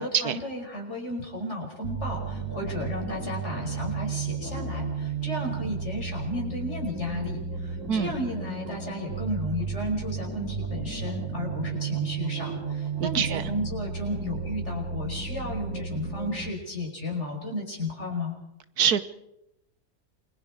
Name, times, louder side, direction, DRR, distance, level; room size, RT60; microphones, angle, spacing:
voice 1, 0.0-18.3, left 1 dB, 45° left, 1 dB, 5.8 m, -33 dB
sound 1, 1.8-16.5, right 5 dB, 50° right, 3.2 m, -33 dB
voice 2, 13.0-13.4 18.8-19.0, right 8 dB, 75° right, 12 dB, 1.5 m, -24 dB
28.5 x 22.5 x 4.9 m, 0.83 s
omnidirectional pair, 1.6 m